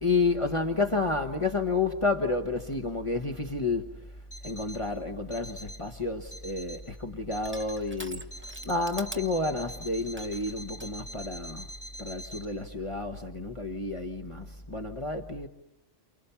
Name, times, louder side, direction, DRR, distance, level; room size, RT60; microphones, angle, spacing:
voice 1, 0.0-4.1 4.4-8.3 8.6-11.7 12.0-15.5, left 3 dB, 25° left, 1.3 m, -30 dB
Alarm, 4.3-4.9 5.3-5.9 6.3-6.9 7.3-7.9 8.3-12.4, right 1 dB, 65° left, 3.7 m, -44 dB
Crushing, 6.7-10.9, right 1 dB, 10° right, 1.1 m, -46 dB
29.5 x 29.0 x 7.1 m
omnidirectional pair, 1.2 m